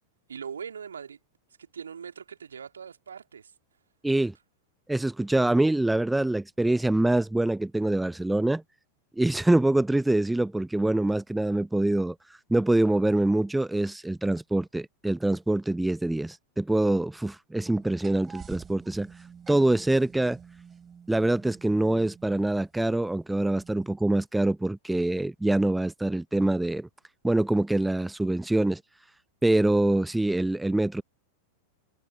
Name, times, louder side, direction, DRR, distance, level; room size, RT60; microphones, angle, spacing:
voice 1, 0.3-1.2 1.6-3.5, right 7 dB, 70° right, 2.4 m, -40 dB
voice 2, 4.0-4.3 4.9-8.6 9.2-12.1 12.5-19.1 19.5-20.4 21.1-26.9 27.2-28.8 29.4-31.0, right 2 dB, 5° right, 0.8 m, -25 dB
sound 1, 17.6-22.9 23.5-24.0, right 7 dB, 20° right, 3.9 m, -48 dB
figure-of-eight pair, 90°, 0 cm